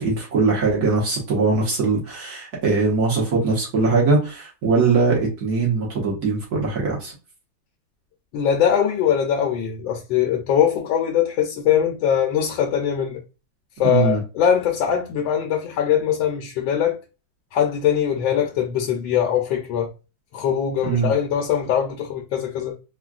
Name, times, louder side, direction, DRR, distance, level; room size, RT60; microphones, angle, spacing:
voice 1, 0.0-7.1 13.8-14.2 20.8-21.1, right 4 dB, 55° right, 1.5 m, -21 dB
voice 2, 8.3-13.2 13.8-17.0 17.5-19.9 20.3-22.8, left 9 dB, 75° left, 1.3 m, -21 dB
3.7 x 2.2 x 2.4 m
omnidirectional pair, 2.1 m